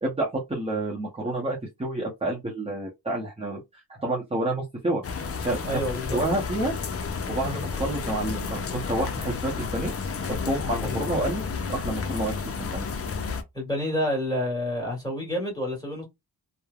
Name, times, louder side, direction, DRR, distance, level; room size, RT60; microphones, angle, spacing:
voice 1, 0.0-5.0 5.4-6.7 7.3-9.9 10.2-12.9, right 1 dB, 15° right, 0.7 m, -29 dB
sound 1, 5.0-13.4, left 5 dB, 40° left, 0.5 m, -31 dB
voice 2, 5.6-6.2 7.4-7.5 10.8-11.0 13.5-16.0, left 1 dB, 10° left, 1.7 m, -29 dB
3.1 x 2.1 x 2.3 m
wide cardioid pair, 145°, 39 cm